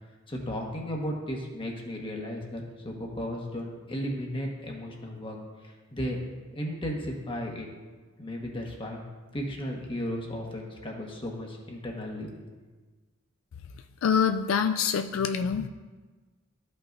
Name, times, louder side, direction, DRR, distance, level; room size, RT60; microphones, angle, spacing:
voice 1, 0.3-5.4 5.6-6.2 6.5-7.7 8.2-9.0 9.3-12.4, equal, 25° left, 0 dB, 1.3 m, -35 dB
voice 2, 14.0-15.7, left 7 dB, 80° left, 7 dB, 0.4 m, -25 dB
13.5 x 5.5 x 2.6 m, 1.3 s
head